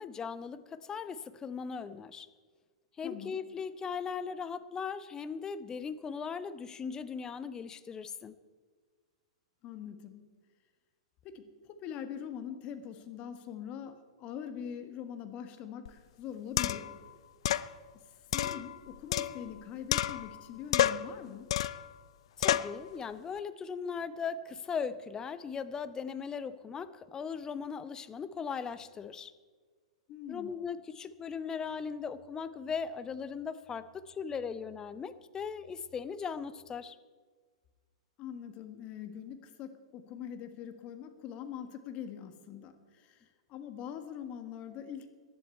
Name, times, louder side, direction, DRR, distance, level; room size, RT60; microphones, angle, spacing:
voice 1, 0.0-2.3 3.0-8.3 22.4-29.3 30.3-37.0, left 6 dB, 20° left, 14 dB, 0.7 m, -38 dB
voice 2, 3.0-3.4 9.6-10.3 11.2-17.0 18.3-21.5 30.1-30.6 38.2-45.1, left 8 dB, 40° left, 9 dB, 1.5 m, -43 dB
sound 1, 15.9-16.0 16.6-17.0 17.5-17.7 18.3-19.6 19.9-20.4 20.7-21.1 21.5-21.9 22.4-22.8, left 11 dB, 65° left, 0.5 m, -30 dB
18.0 x 11.5 x 4.4 m, 1.5 s
hypercardioid pair, 110°, 3 cm